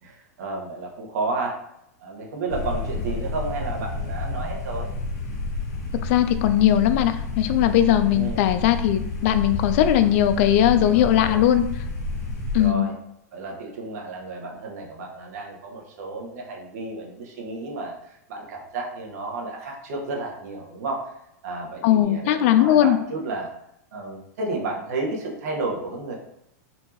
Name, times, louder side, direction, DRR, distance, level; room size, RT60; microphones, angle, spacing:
voice 1, 0.0-1.6 2.0-4.9 8.1-8.4 10.6-11.4 12.6-12.9 13.3-21.1 21.4-23.5 23.9-26.1, right 3 dB, 70° right, -1 dB, 1.3 m, -32 dB
sound 1, 2.5-12.7, left 2 dB, 70° left, 1.2 m, -30 dB
voice 2, 6.0-11.6 12.5-12.9 21.8-23.0, left 11 dB, 55° left, 10 dB, 0.4 m, -19 dB
4.3 x 2.7 x 2.9 m, 0.79 s
supercardioid pair, 145°, 9 cm